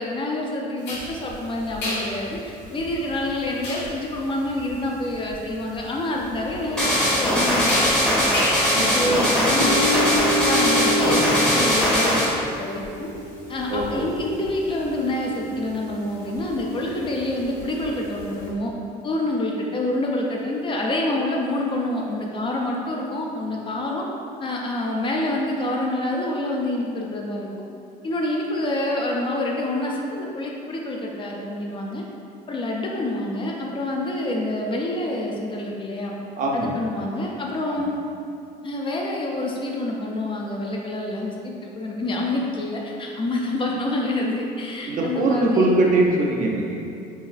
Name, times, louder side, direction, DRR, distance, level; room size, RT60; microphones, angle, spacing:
voice 1, 0.0-8.4 8.8-13.1 13.5-18.7 19.0-24.1 24.4-27.7 28.0-32.0 32.5-36.1 36.5-38.0 38.6-45.7, left 1 dB, 30° left, -1 dB, 0.4 m, -27 dB
sound 1, 0.8-18.5, equal, 80° left, 1.2 m, -30 dB
sound 2, 6.8-12.3, equal, 5° left, 0.7 m, -20 dB
voice 2, 8.7-9.2 13.7-14.1 36.4-36.8 37.7-37.8 44.9-46.8, right 2 dB, 50° right, -1 dB, 0.5 m, -22 dB
3.8 x 2.4 x 2.4 m, 2.5 s
cardioid pair, 110°, 17 cm